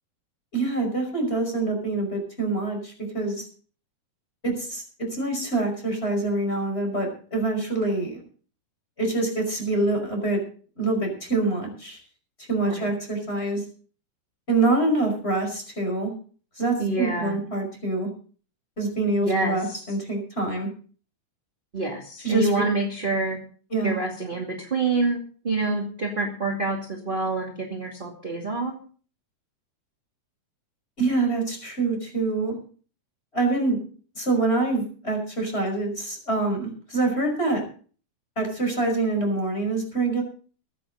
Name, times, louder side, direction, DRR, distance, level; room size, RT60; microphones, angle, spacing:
voice 1, 0.5-3.5 4.4-4.8 5.1-8.2 9.0-10.4 10.8-12.0 12.5-13.6 14.5-16.1 16.6-18.1 18.8-20.7 22.2-22.5 23.7-24.0 31.0-32.6 33.3-33.8 34.2-37.6 38.4-40.2, right 2 dB, 15° left, 3 dB, 5.5 m, -25 dB
voice 2, 16.8-17.4 19.2-19.8 21.7-23.4 23.8-25.2 25.4-28.7, right 3 dB, 20° right, -1 dB, 1.6 m, -27 dB
23.0 x 9.2 x 4.0 m, 0.42 s
omnidirectional pair, 4.5 m